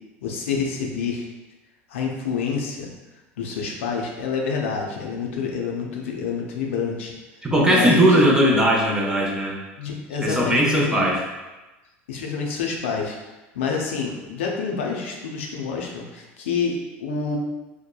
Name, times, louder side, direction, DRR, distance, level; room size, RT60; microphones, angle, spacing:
voice 1, 0.2-1.3 1.9-2.9 3.4-7.1 7.7-8.1 9.8-11.1 12.1-13.2 13.5-17.4, left 5 dB, 80° left, 0 dB, 0.5 m, -27 dB
voice 2, 7.4-9.6 10.2-11.2, equal, 10° right, -3 dB, 0.6 m, -18 dB
2.8 x 2.1 x 2.2 m, 1.1 s
hypercardioid pair, 85°, 7 cm